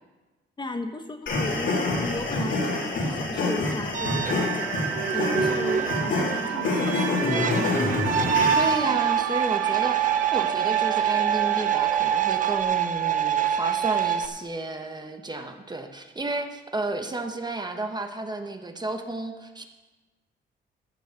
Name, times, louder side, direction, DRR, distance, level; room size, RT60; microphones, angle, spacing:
voice 1, 0.6-8.0, left 2 dB, 25° left, 6 dB, 1.0 m, -35 dB
sound 1, 1.3-8.9, left 2 dB, 75° left, 3.6 m, -27 dB
sound 2, 3.9-14.3, right 8 dB, 40° right, 0.9 m, -26 dB
sound 3, 4.0-12.6, right 11 dB, 85° right, 0.7 m, -32 dB
voice 2, 8.5-19.6, right 2 dB, 20° right, 5 dB, 1.2 m, -32 dB
14.5 x 6.3 x 6.8 m, 1.2 s
cardioid pair, 90°, 20 cm